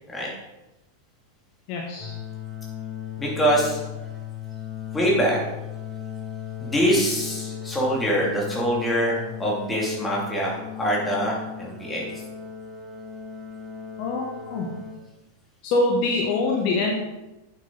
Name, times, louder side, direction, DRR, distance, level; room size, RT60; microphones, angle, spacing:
voice 1, 1.7-2.1 14.0-14.7 15.6-17.0, left 2 dB, 45° left, 0 dB, 1.3 m, -24 dB
sound 1, 2.0-14.9, left 9 dB, 15° right, 3.2 m, -37 dB
voice 2, 3.2-3.8 4.9-5.4 6.6-12.1, equal, 10° left, -3 dB, 2.7 m, -24 dB
8.7 x 7.4 x 4.0 m, 1.0 s
figure-of-eight pair, 90°, 0 cm